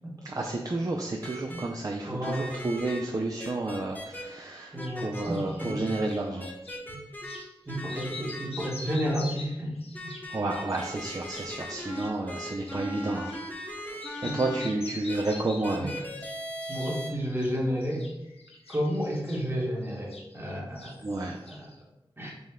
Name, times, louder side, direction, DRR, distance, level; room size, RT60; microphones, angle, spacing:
voice 1, 0.2-6.5 10.3-13.3 13.9-16.0 21.0-21.4, right 2 dB, 40° right, 1 dB, 0.4 m, -31 dB
sound 1, 1.2-1.6 2.2-3.0 3.4-4.2 4.8-5.2 5.6-6.0 6.4-7.4 7.7-9.1 9.9-14.7 15.1-15.2 15.6-17.1, equal, 20° left, 0.9 m, -39 dB
voice 2, 2.1-2.5 4.7-5.7 6.9-7.0 7.7-9.7 14.2-14.4 15.8-15.9 16.7-18.0 18.7-21.0 21.4-21.7 22.2-22.3, equal, 25° right, -3 dB, 1.2 m, -31 dB
sound 2, 4.5-6.8 7.2-7.5 7.8-13.7 14.0-15.8 16.2-17.0 17.2-20.5 20.8-21.8, left 3 dB, 80° left, 0.5 m, -46 dB
5.1 x 2.2 x 3.5 m, 0.91 s
wide cardioid pair, 55°, 10 cm